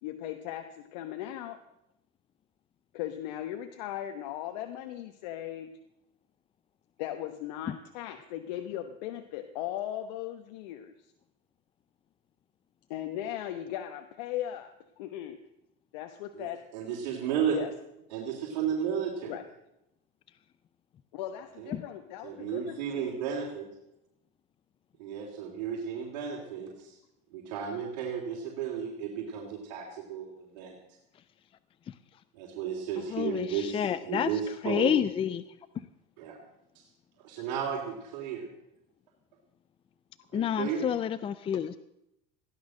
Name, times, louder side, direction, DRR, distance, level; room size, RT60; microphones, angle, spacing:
voice 1, 0.0-1.6 2.9-5.7 7.0-10.9 12.9-14.7 15.0-15.4 15.9-16.6 17.5-17.7 19.3-19.4 21.1-23.1 41.5-41.6, left 12 dB, 80° left, 7 dB, 1.1 m, -38 dB
voice 2, 16.7-17.6 18.1-19.3 21.6-21.8 22.2-23.6 25.0-27.0 27.3-30.3 30.5-30.8 32.3-34.9 36.2-36.4 37.2-38.5 40.3-40.8, right 7 dB, 85° right, -3 dB, 3.4 m, -33 dB
voice 3, 33.0-34.3 34.6-35.4 40.3-41.8, left 9 dB, 25° left, 14 dB, 0.5 m, -29 dB
16.0 x 11.0 x 6.4 m, 0.86 s
supercardioid pair, 130°, 21 cm